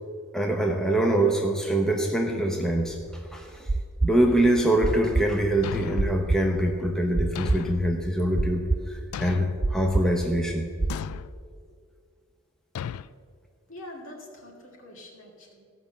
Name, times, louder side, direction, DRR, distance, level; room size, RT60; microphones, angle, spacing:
voice 1, 0.3-3.7 4.0-10.7, right 1 dB, 5° left, 2 dB, 0.8 m, -24 dB
sound 1, 2.9-11.0, right 2 dB, 15° right, 0.3 m, -27 dB
Thump thud, 5.6-6.3 7.4-7.9 9.1-9.7 10.9-11.3 12.8-13.1, left 8 dB, 85° left, 0.3 m, -35 dB
voice 2, 13.7-15.6, left 1 dB, 60° left, 0 dB, 2.4 m, -44 dB
15.5 x 5.8 x 6.9 m, 2.2 s
head